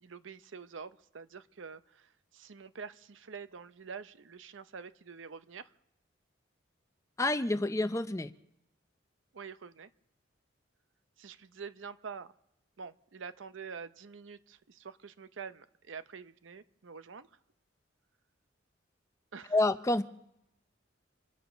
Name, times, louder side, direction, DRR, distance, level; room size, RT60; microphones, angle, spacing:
voice 1, 0.0-5.7 9.3-9.9 11.2-12.3 12.8-17.4 19.3-19.6, right 5 dB, 80° right, 12 dB, 0.7 m, -46 dB
voice 2, 7.2-8.3 19.5-20.0, left 2 dB, 15° left, 11 dB, 0.5 m, -28 dB
27.0 x 9.4 x 5.6 m, 0.81 s
head